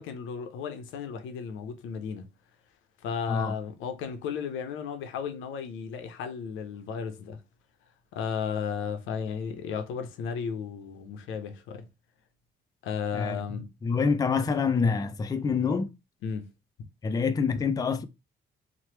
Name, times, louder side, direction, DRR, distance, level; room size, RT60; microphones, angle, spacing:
voice 1, 0.0-2.3 3.0-7.4 8.1-11.9 12.8-13.7 16.2-16.5, left 6 dB, 85° left, 0.6 m, -34 dB
voice 2, 13.8-15.9 17.0-18.1, left 5 dB, 20° left, 0.3 m, -26 dB
3.0 x 2.0 x 3.1 m
cardioid pair, 90°, 20 cm